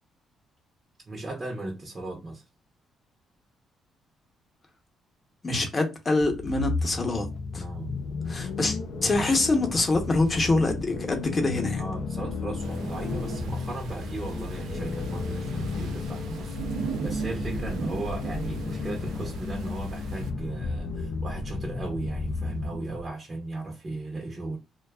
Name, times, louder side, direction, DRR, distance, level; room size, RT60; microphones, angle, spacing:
voice 1, 1.1-2.4 7.6-7.9 11.7-24.6, right 2 dB, 30° right, 0.7 m, -36 dB
voice 2, 5.4-7.3 7.5-7.6 8.3-11.8, left 2 dB, 30° left, 0.7 m, -25 dB
sound 1, 6.2-23.1, left 3 dB, 70° left, 0.4 m, -33 dB
sound 2, 12.6-20.3, right 6 dB, 80° right, 0.5 m, -38 dB
2.5 x 2.2 x 2.2 m
cardioid pair, 90°, 0 cm